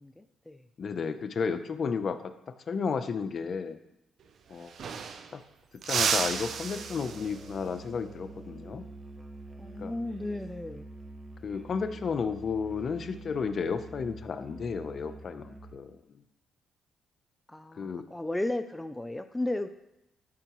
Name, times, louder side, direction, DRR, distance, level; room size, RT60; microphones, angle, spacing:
voice 1, 0.0-0.7 9.6-10.9 17.5-19.7, left 2 dB, 10° left, 8 dB, 0.4 m, -34 dB
voice 2, 0.8-3.8 4.5-4.9 5.3-5.4 5.8-8.8 9.8-9.9 11.4-16.2 17.8-18.1, left 5 dB, 50° left, 10 dB, 0.7 m, -33 dB
sound 1, 4.2-4.3 4.5-5.4 5.8-7.6 10.1-10.4 11.8-12.3, right 6 dB, 60° right, 0.5 m, -32 dB
Musical instrument, 6.0-15.8, right 2 dB, 20° right, 0.8 m, -46 dB
12.0 x 5.6 x 3.0 m, 0.86 s
cardioid pair, 90°, 0 cm